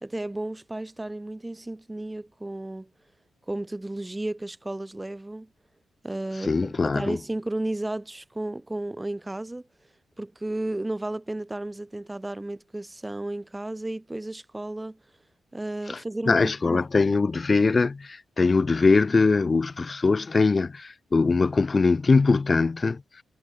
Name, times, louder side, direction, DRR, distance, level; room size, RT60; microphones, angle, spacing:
voice 1, 0.0-2.9 3.5-5.5 6.0-9.7 10.2-15.0 15.5-17.2, right 1 dB, 10° right, 1.7 m, -33 dB
voice 2, 6.4-7.2 15.9-16.0 16.3-23.0, left 4 dB, 25° left, 0.6 m, -22 dB
wide cardioid pair, 155°, 0 cm